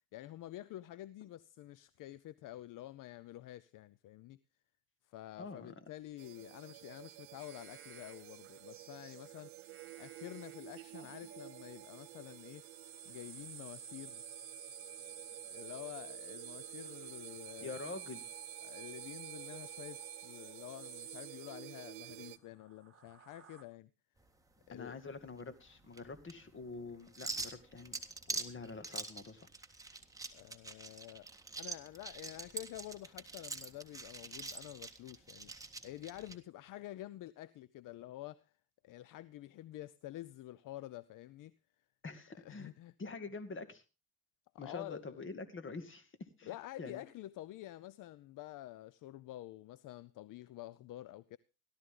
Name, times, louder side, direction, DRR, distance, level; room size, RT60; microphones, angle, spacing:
voice 1, 0.1-4.4 5.1-9.5 10.0-12.6 13.1-14.2 15.5-17.8 18.6-23.9 24.7-25.0 30.3-31.3 31.6-35.5 35.8-38.4 38.8-41.6 42.4-42.9 44.5-45.2 46.5-51.4, left 15 dB, 55° left, 0.7 m, -49 dB
voice 2, 5.4-5.9 17.6-18.3 24.7-28.0 28.3-29.5 42.0-42.7 43.0-43.8 44.6-47.0, left 3 dB, 30° left, 2.4 m, -46 dB
sound 1, 6.2-22.4, right 21 dB, 90° right, 0.8 m, -53 dB
sound 2, 7.4-22.0 22.6-23.6, right 7 dB, 35° right, 2.6 m, -51 dB
sound 3, 24.2-36.4, right 3 dB, 10° right, 1.8 m, -46 dB
17.0 x 12.5 x 3.8 m
supercardioid pair, 90°, 37 cm